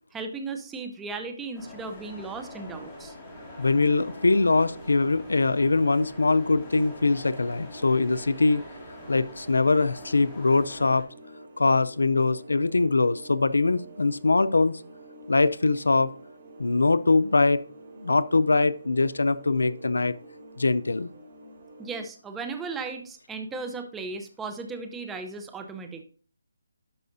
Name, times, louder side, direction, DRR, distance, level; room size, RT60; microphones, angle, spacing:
voice 1, 0.1-3.1 21.8-26.0, right 4 dB, 10° right, 0.7 m, -36 dB
sound 1, 1.5-11.0, left 1 dB, 15° left, 2.2 m, -44 dB
sound 2, 3.3-22.0, right 1 dB, 35° right, 3.4 m, -47 dB
voice 2, 3.6-8.6 9.1-11.1 11.6-14.8 15.3-16.1 16.6-17.6 18.0-20.1 20.6-21.1, left 3 dB, 85° left, 0.5 m, -22 dB
12.0 x 4.9 x 2.7 m
hypercardioid pair, 165°, 0 cm